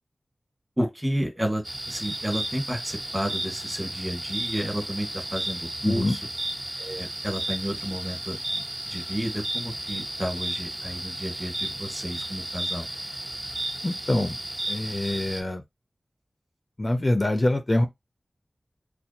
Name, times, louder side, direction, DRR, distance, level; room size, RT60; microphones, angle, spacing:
voice 1, 0.8-6.2 6.8-12.9, equal, 20° right, 1.5 m, -31 dB
sound 1, 1.6-15.4, right 1 dB, 50° right, 1.3 m, -33 dB
voice 2, 5.8-6.2 13.8-14.4 14.7-15.6 16.8-17.9, left 1 dB, 40° left, 0.5 m, -24 dB
4.2 x 2.2 x 2.7 m
wide cardioid pair, 55°, 0 cm